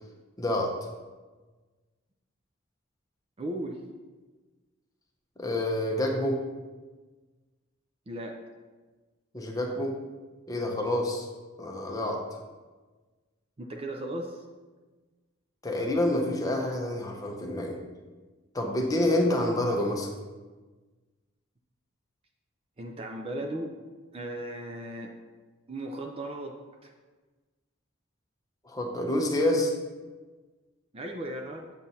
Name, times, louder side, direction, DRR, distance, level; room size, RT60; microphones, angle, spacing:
voice 1, 0.4-0.8 5.4-6.4 9.3-9.9 10.5-11.3 11.6-12.2 15.6-17.8 18.5-20.1 28.6-29.7, left 1 dB, 15° left, 1 dB, 0.8 m, -27 dB
voice 2, 3.4-3.8 8.1-8.4 13.6-14.3 22.8-23.7 24.1-25.1 25.7-26.5 30.9-31.7, right 1 dB, 30° right, 2 dB, 0.5 m, -36 dB
7.4 x 7.3 x 2.7 m, 1.3 s
head